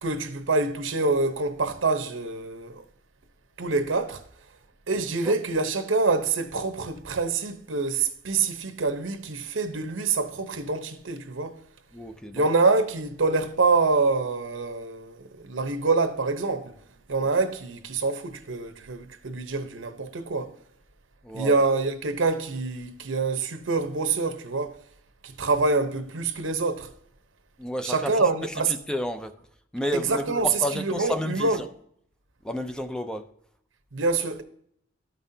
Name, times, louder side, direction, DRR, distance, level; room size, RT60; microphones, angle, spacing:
voice 1, 0.0-2.8 3.6-4.2 4.9-11.6 12.3-16.8 17.1-20.5 21.3-24.8 25.2-26.9 27.8-28.7 29.9-31.6 33.9-34.4, right 3 dB, 80° right, 0.9 m, -26 dB
voice 2, 11.9-12.4 21.2-21.5 27.6-28.1 28.4-29.3 29.7-31.7 32.4-33.3, left 1 dB, 5° left, 0.4 m, -31 dB
13.5 x 5.5 x 2.7 m
head